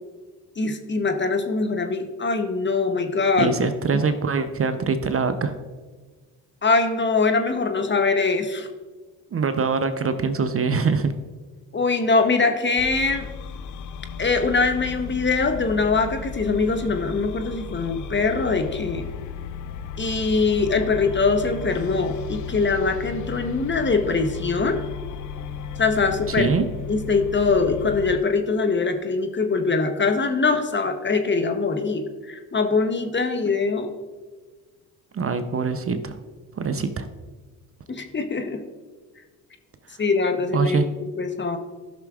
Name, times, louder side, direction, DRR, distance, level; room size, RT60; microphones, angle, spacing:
voice 1, 0.6-3.5 3.9-4.0 6.6-8.7 11.7-13.3 14.2-19.1 20.0-24.8 25.8-26.5 26.9-33.9 37.9-38.6 40.0-40.8 41.2-41.6, left 4 dB, 25° left, 7 dB, 0.8 m, -22 dB
voice 2, 3.4-5.6 9.3-11.1 26.3-26.6 35.1-36.2 36.6-37.1 40.5-40.8, right 5 dB, 35° right, 9 dB, 0.6 m, -23 dB
sound 1, 12.8-28.2, left 6 dB, 45° left, 0.5 m, -35 dB
13.0 x 6.0 x 2.4 m, 1.4 s
supercardioid pair, 60°, 42 cm